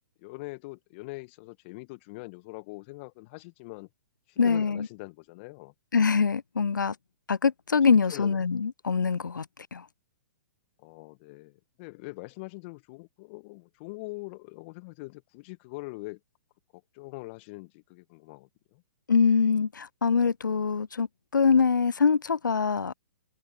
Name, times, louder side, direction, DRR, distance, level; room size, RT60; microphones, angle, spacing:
voice 1, 0.2-3.9 4.3-5.7 8.1-8.4 10.8-16.2 16.7-18.8, left 25 dB, 35° left, 1.4 m, -43 dB
voice 2, 4.4-4.9 5.9-7.0 7.3-9.5 9.7-9.8 19.1-21.1 21.3-22.9, left 5 dB, 80° left, 0.4 m, -24 dB
figure-of-eight pair, 120°, 10 cm